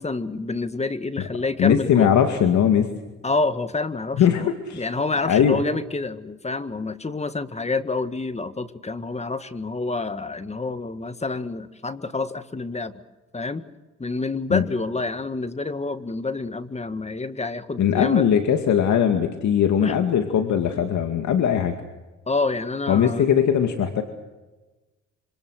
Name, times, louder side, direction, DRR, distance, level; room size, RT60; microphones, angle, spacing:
voice 1, 0.0-2.1 3.2-12.9 13.3-13.7 14.0-18.2 19.8-20.0 22.3-23.3, left 3 dB, 20° left, 11 dB, 1.8 m, -28 dB
voice 2, 1.6-2.9 4.2-4.9 5.2-5.7 14.5-14.6 17.8-21.7 22.9-24.0, left 8 dB, 70° left, 5 dB, 2.3 m, -20 dB
26.0 x 26.0 x 6.5 m, 1.2 s
cardioid pair, 90°, 30 cm